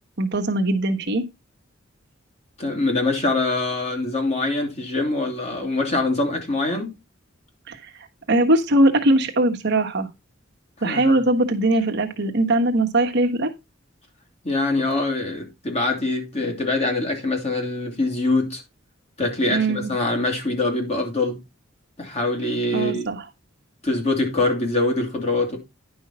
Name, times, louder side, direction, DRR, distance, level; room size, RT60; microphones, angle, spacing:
voice 1, 0.2-1.2 7.7-7.8 8.3-10.1 10.8-13.5 19.5-19.9 22.7-23.2, right 1 dB, 60° right, 1.4 m, -20 dB
voice 2, 2.6-6.9 10.8-11.2 14.4-18.6 19.2-21.4 22.0-23.1 23.8-25.6, left 2 dB, 35° left, 2.9 m, -24 dB
10.5 x 5.6 x 4.3 m
head